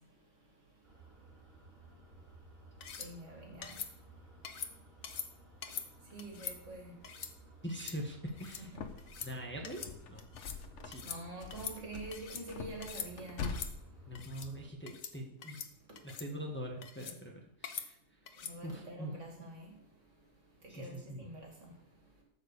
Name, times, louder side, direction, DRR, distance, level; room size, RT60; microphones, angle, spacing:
sound 1, 0.8-14.7, right 2 dB, 35° right, 3.2 m, -58 dB
sound 2, 2.8-3.1 3.6-3.9 4.4-4.7 5.0-5.3 5.6-5.9 6.2-6.6 7.0-7.3 7.7-8.0 8.3-8.6 9.0-9.3 9.6-9.9 10.2-10.6 10.9-11.2 11.5-12.4 12.8-13.1 13.4-13.7 14.1-14.5 14.9-15.1 15.4-15.7 16.0-16.3 16.8-17.2 17.6-17.9 18.3-18.5, left 7 dB, 80° left, 1.4 m, -43 dB
voice 1, 3.0-3.8 6.1-6.9 8.6-8.8 11.0-13.5 18.4-19.7 20.7-21.7, right 2 dB, 65° right, -1 dB, 2.9 m, -46 dB
voice 2, 7.6-8.7 9.2-9.8 10.1-10.2 10.8-11.1 14.1-15.6 16.0-18.2 18.6-19.1 20.7-21.3, equal, 10° left, 0 dB, 1.5 m, -43 dB
sound 3, 8.3-9.3 9.6-11.1 11.4-13.6, left 5 dB, 65° left, 1.2 m, -44 dB
14.0 x 5.3 x 6.7 m, 0.79 s
omnidirectional pair, 1.4 m